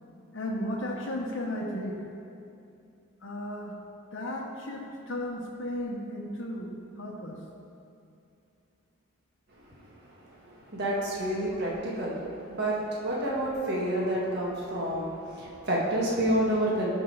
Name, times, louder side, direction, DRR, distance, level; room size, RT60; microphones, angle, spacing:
voice 1, 0.3-2.0 3.2-3.7 4.1-7.4 14.0-14.2, left 1 dB, 60° left, 0 dB, 0.9 m, -35 dB
voice 2, 10.5-16.9, right 1 dB, 50° right, -5 dB, 1.6 m, -29 dB
12.5 x 4.6 x 3.9 m, 2.6 s
head